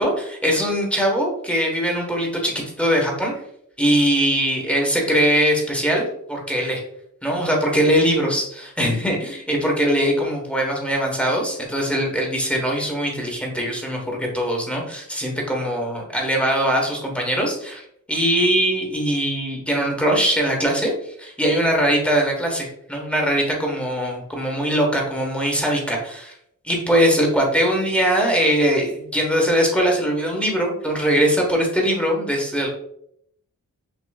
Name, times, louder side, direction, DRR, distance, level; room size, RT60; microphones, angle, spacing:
voice 1, 0.0-3.3 3.8-6.8 7.2-26.3 26.6-32.7, equal, 5° left, -1 dB, 1.3 m, -21 dB
6.3 x 3.0 x 2.4 m, 0.71 s
wide cardioid pair, 90°, 34 cm